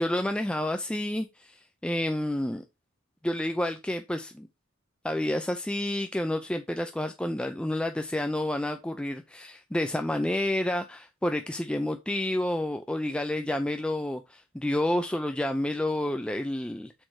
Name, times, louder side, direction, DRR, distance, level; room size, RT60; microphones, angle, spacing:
voice 1, 0.0-2.6 3.2-4.5 5.0-16.9, left 1 dB, 5° left, 0.4 m, -29 dB
6.4 x 4.4 x 4.6 m
head